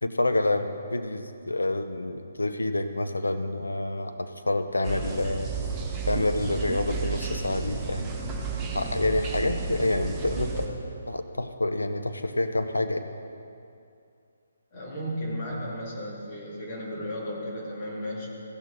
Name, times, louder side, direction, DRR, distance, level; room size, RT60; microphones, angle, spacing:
voice 1, 0.0-5.6 6.1-8.1 8.7-10.5 11.1-13.1, left 2 dB, 85° left, 8 dB, 0.7 m, -28 dB
sound 1, 4.8-10.7, right 5 dB, 15° right, 1.2 m, -32 dB
voice 2, 10.4-10.8 14.7-18.3, equal, 35° left, -5 dB, 2.6 m, -34 dB
16.0 x 6.6 x 4.0 m, 2.5 s
figure-of-eight pair, 140°, 0 cm